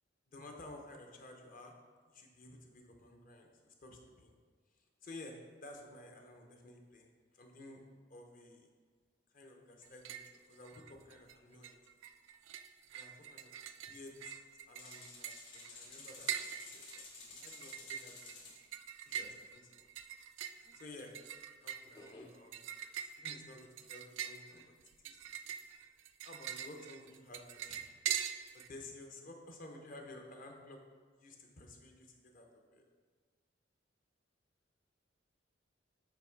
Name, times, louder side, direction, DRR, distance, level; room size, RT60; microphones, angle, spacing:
voice 1, 0.3-1.8 2.1-4.3 5.0-7.8 8.1-8.7 9.3-11.8 12.9-13.6 13.9-14.3 14.7-16.3 16.6-18.5 19.1-20.0 20.7-21.1 21.6-24.7 25.0-25.2 26.2-27.9 28.5-30.8 31.2-32.8, left 2 dB, 45° left, 2 dB, 0.8 m, -53 dB
sound 1, 9.8-10.4 10.6-11.3 11.6-28.7, right 9 dB, 85° right, 0.3 m, -43 dB
sound 2, 14.8-18.6, left 3 dB, 85° left, 1.4 m, -52 dB
voice 2, 20.6-21.0 21.8-22.6, left 2 dB, 20° left, -1 dB, 0.3 m, -57 dB
6.8 x 3.1 x 4.6 m, 1.5 s
head